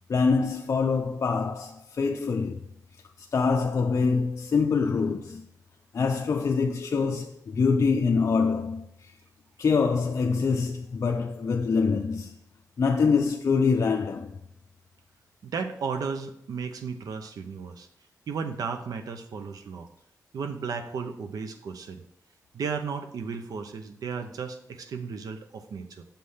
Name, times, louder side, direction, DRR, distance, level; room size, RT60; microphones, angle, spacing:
voice 1, 0.1-2.6 3.2-5.4 5.9-9.1 9.6-12.3 12.8-14.4, left 5 dB, 50° left, 0.5 m, -25 dB
voice 2, 15.4-17.9 18.3-19.9 20.3-22.0 22.5-26.0, right 5 dB, 75° right, 0.7 m, -34 dB
7.0 x 3.3 x 5.5 m
cardioid pair, 85°, 6 cm